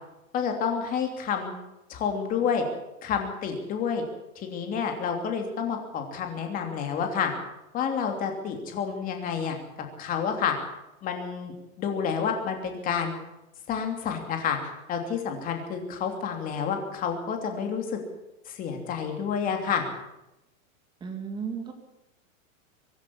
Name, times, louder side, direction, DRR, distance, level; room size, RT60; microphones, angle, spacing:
voice 1, 0.3-1.5 1.9-2.7 3.0-4.0 4.3-7.3 7.7-9.6 10.0-10.5 11.0-13.1 13.7-14.6 14.9-18.0 18.5-19.9, left 7 dB, 20° left, 4 dB, 3.0 m, -29 dB
voice 2, 21.0-21.7, right 6 dB, 10° right, 3 dB, 2.6 m, -34 dB
24.5 x 11.0 x 10.0 m, 0.92 s
supercardioid pair, 170°, 42 cm